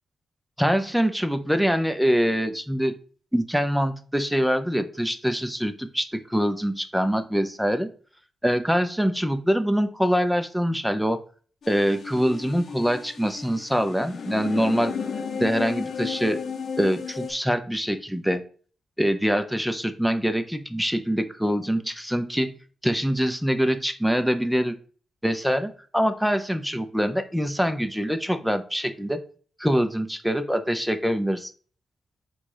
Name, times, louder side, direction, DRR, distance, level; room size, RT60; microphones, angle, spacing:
voice 1, 0.6-2.9 3.3-7.9 8.4-11.2 11.7-14.9 15.4-16.4 16.8-18.4 19.0-22.5 22.8-24.8 25.2-29.2 29.6-31.5, equal, ahead, 9 dB, 0.7 m, -24 dB
sound 1, 11.6-17.3, left 6 dB, 60° left, 0.6 m, -33 dB
3.8 x 2.4 x 4.6 m, 0.41 s
hypercardioid pair, 40°, 0 cm